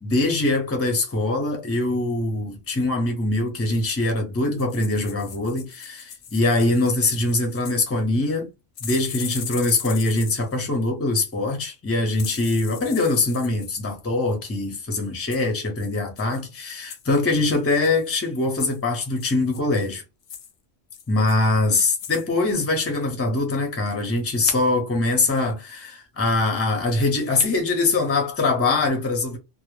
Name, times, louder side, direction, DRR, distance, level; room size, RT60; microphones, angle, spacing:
voice 1, 0.0-8.5 8.8-20.0 21.1-29.4, left 2 dB, 20° left, 0.5 m, -23 dB
sound 1, 4.5-7.9 8.8-10.6 12.1-13.7 15.3-15.5 15.8-15.9 16.2-16.4 16.9-17.1 17.5-18.1 18.6-18.8 19.2-19.8 20.2-20.5 20.9-21.6 21.9-22.3 22.5-22.6, left 8 dB, 90° left, 1.0 m, -38 dB
2.1 x 2.1 x 3.0 m
omnidirectional pair, 1.3 m